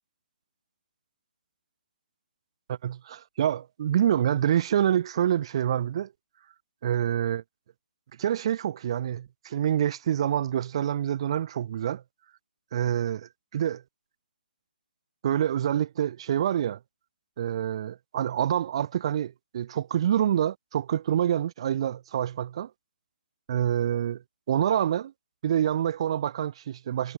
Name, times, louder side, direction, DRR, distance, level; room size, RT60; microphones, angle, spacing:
voice 1, 2.7-6.1 6.8-7.4 8.2-12.0 12.7-13.8 15.2-16.8 17.4-22.7 23.5-24.2 24.5-25.1 25.4-27.2, right 10 dB, 30° right, 5.6 m, -26 dB
hypercardioid pair, 175°, 6 cm